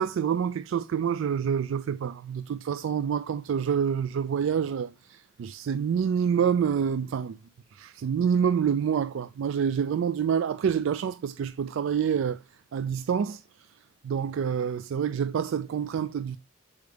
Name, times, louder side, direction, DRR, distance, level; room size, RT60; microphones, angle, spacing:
voice 1, 0.0-7.4 7.7-12.4 12.7-13.4 14.0-16.4, right 7 dB, 70° right, 0.3 m, -27 dB
6.4 x 4.7 x 3.3 m
head